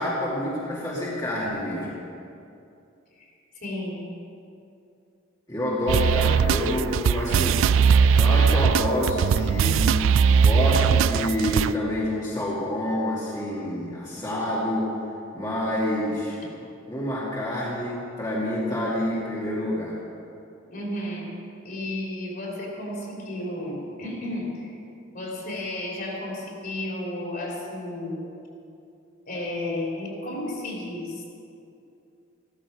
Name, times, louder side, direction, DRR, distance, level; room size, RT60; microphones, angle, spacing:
voice 1, 0.0-1.9 5.5-7.7 8.1-9.9 10.4-14.9 15.3-16.4 16.9-20.0, left 1 dB, 20° left, -8 dB, 2.2 m, -27 dB
voice 2, 3.2-4.1 20.7-21.4 21.6-24.7 25.1-28.3 29.3-31.2, left 1 dB, 50° left, -3 dB, 3.6 m, -33 dB
sound 1, 5.9-11.7, right 6 dB, 65° right, 0.3 m, -20 dB
15.0 x 13.5 x 4.9 m, 2.6 s
head